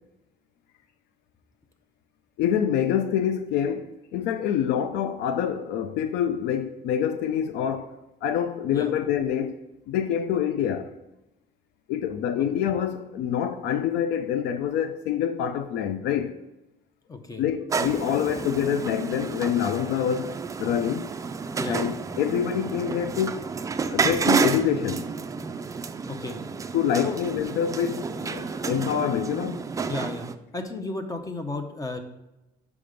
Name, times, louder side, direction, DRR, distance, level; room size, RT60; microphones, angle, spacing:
voice 1, 2.4-7.9 8.2-9.6 9.9-10.9 11.9-16.4 17.4-20.3 20.6-21.1 21.7-23.5 23.9-25.1 26.7-29.7, left 9 dB, 85° left, 0.4 m, -26 dB
voice 2, 17.1-17.4 21.6-21.8 26.1-26.4 27.0-27.2 29.9-30.3 30.5-32.0, left 2 dB, 20° left, 0.7 m, -33 dB
sound 1, 17.7-30.3, right 5 dB, 20° right, 0.3 m, -30 dB
5.1 x 4.8 x 5.0 m
cardioid pair, 110°, 17 cm